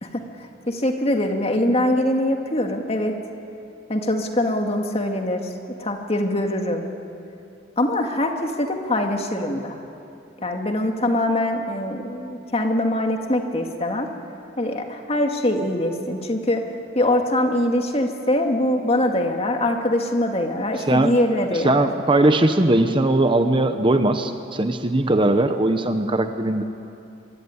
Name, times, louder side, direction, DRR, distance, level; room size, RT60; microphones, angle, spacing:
voice 1, 0.0-3.1 3.9-5.5 5.8-6.9 7.8-9.8 10.4-14.1 14.6-16.6 16.9-21.9, left 1 dB, 30° left, 3 dB, 2.2 m, -23 dB
voice 2, 20.8-21.1 21.6-26.6, right 2 dB, 25° right, 8 dB, 0.9 m, -19 dB
25.5 x 24.0 x 9.7 m, 2.8 s
head